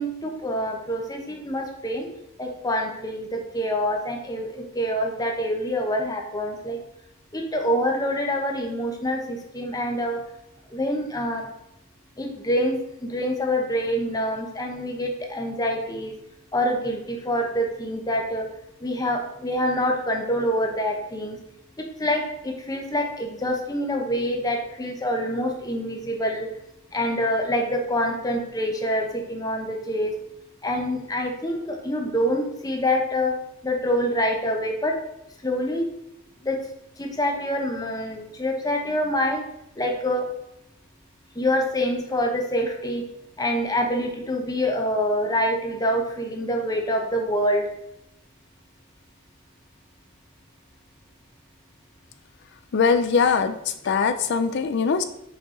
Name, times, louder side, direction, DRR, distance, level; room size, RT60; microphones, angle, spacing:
voice 1, 0.0-2.1 2.4-6.8 7.3-10.2 10.7-11.5 12.2-16.1 16.5-18.5 18.8-21.4 21.8-26.5 26.9-30.1 30.6-33.4 33.6-35.0 35.4-35.9 36.4-36.6 37.0-39.4 39.7-40.3 41.3-43.0 43.4-47.7, equal, 15° left, 2 dB, 0.9 m, -26 dB
voice 2, 52.7-55.0, left 5 dB, 55° left, 10 dB, 0.4 m, -22 dB
6.2 x 4.7 x 3.8 m, 0.82 s
head